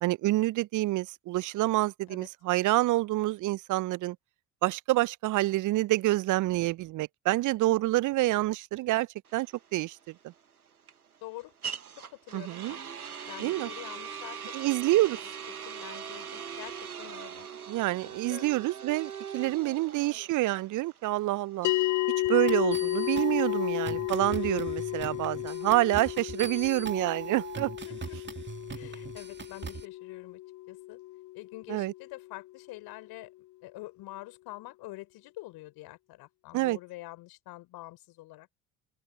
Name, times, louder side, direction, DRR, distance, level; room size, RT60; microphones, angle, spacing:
voice 1, 0.0-4.2 4.6-10.0 10.2-10.3 12.3-12.8 13.4-13.7 14.5-15.2 17.7-21.7 22.3-27.7 31.7-31.9 36.5-36.8, right 17 dB, 45° right, 0.7 m, -27 dB
sound 1, 9.3-23.1, right 7 dB, 90° right, 1.3 m, -42 dB
voice 2, 11.2-11.5 11.9-12.8 13.3-14.5 14.9-15.0 15.7-17.5 18.0-18.5 19.5-19.9 27.8-28.2 28.7-30.4 30.7-31.0 31.3-33.3 33.6-38.5, left 19 dB, 60° left, 4.4 m, -46 dB
sound 2, 21.6-32.2, left 17 dB, 45° left, 0.8 m, -32 dB
sound 3, 22.5-29.8, right 5 dB, 25° right, 2.5 m, -41 dB
open air
figure-of-eight pair, 55°, 43 cm